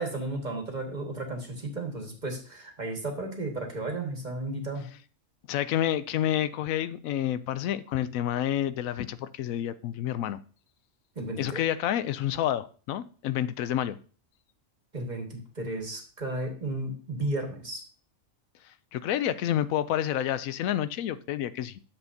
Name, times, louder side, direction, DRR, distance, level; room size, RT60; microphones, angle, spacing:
voice 1, 0.0-4.8 11.1-11.6 14.9-17.8, right 2 dB, 35° right, 1.7 m, -34 dB
voice 2, 5.5-10.4 11.4-14.0 18.7-21.8, left 11 dB, 90° left, 1.0 m, -29 dB
11.0 x 7.1 x 2.7 m
omnidirectional pair, 1.4 m